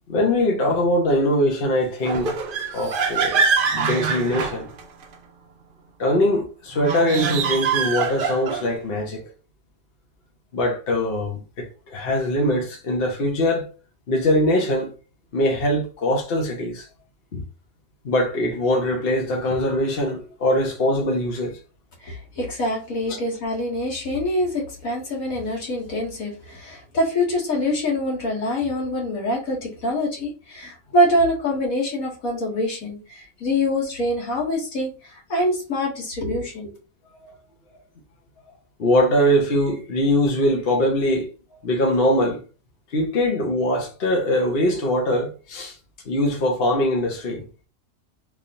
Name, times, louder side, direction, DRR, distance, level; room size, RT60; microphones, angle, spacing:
voice 1, 0.1-2.4 2.7-3.4 3.7-4.7 6.0-9.3 10.5-13.7 14.1-14.9 15.3-16.9 17.3-17.4 18.0-21.6 37.2-37.3 38.8-42.4 42.9-45.8 46.1-47.5, left 1 dB, 45° left, 1.0 m, -22 dB
sound 1, 2.0-5.1 6.7-8.8, right 5 dB, 60° right, 0.5 m, -24 dB
voice 2, 22.0-36.7, left 1 dB, 70° left, 1.9 m, -25 dB
3.5 x 3.1 x 2.6 m
omnidirectional pair, 1.5 m